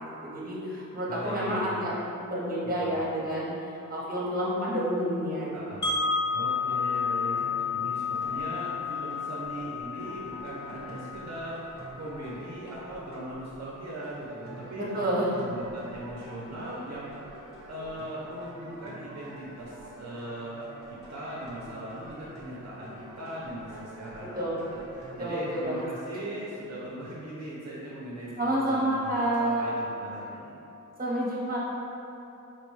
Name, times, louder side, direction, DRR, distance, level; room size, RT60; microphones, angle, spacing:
voice 1, 0.0-5.5 5.9-6.0 14.8-15.4 24.4-24.6 25.2-25.8 28.4-29.6 31.0-31.6, right 1 dB, 25° right, -6 dB, 0.9 m, -29 dB
voice 2, 1.1-1.9 2.6-3.0 5.5-5.9 6.3-17.2 17.7-30.6, right 1 dB, 55° right, -7 dB, 0.6 m, -39 dB
Wind chime, 5.8-11.8, left 5 dB, 65° left, 0.7 m, -31 dB
sound 1, 6.3-25.9, right 1 dB, 10° left, 1.0 m, -48 dB
4.6 x 2.2 x 3.0 m, 3.0 s
wide cardioid pair, 105°, 32 cm